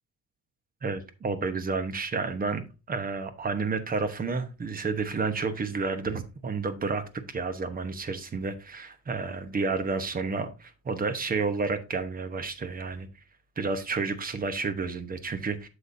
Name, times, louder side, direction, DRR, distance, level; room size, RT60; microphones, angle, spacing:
voice 1, 0.8-2.6 2.9-13.1 13.6-15.7, right 4 dB, 30° right, 0.9 m, -30 dB
7.9 x 7.0 x 2.6 m
cardioid pair, 145°, 31 cm